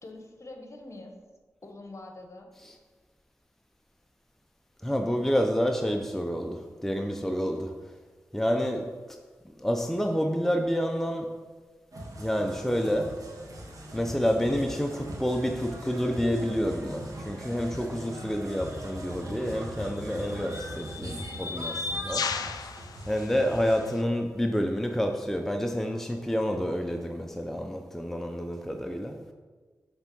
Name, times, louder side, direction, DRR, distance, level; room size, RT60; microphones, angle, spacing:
voice 1, 0.0-1.1 1.6-2.5, left 2 dB, 50° left, 1.1 m, -44 dB
voice 2, 4.8-7.8 8.3-9.2 9.4-11.3 12.2-13.2 13.9-22.3 23.1-29.2, equal, 5° left, 0.6 m, -29 dB
sound 1, 11.9-23.8, right 1 dB, 65° right, 1.5 m, -41 dB
sound 2, 18.6-18.8 19.8-24.0, left 5 dB, 85° left, 0.3 m, -36 dB
7.1 x 3.4 x 5.4 m
cardioid pair, 45°, 6 cm